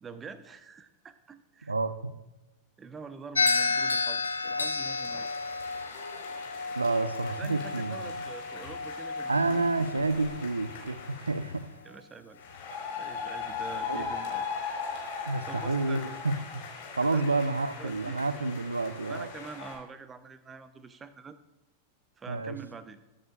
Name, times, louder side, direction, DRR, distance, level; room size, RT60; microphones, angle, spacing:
voice 1, 0.0-1.7 2.8-5.3 7.4-9.6 11.8-12.4 13.0-14.5 14.9-16.2 17.0-17.3 17.8-18.5 19.1-21.4 22.2-23.0, right 5 dB, 20° right, 12 dB, 0.9 m, -46 dB
voice 2, 1.6-2.1 6.8-8.0 9.3-11.7 13.9-14.1 15.3-16.6 17.0-19.3 22.3-22.6, right 3 dB, 80° right, 13 dB, 0.7 m, -29 dB
sound 1, 3.3-11.7, left 4 dB, 75° left, 0.8 m, -32 dB
sound 2, 4.3-11.7 12.4-19.8, left 5 dB, 50° left, 4.5 m, -40 dB
22.0 x 10.0 x 2.4 m, 1.1 s
figure-of-eight pair, 90°, 0 cm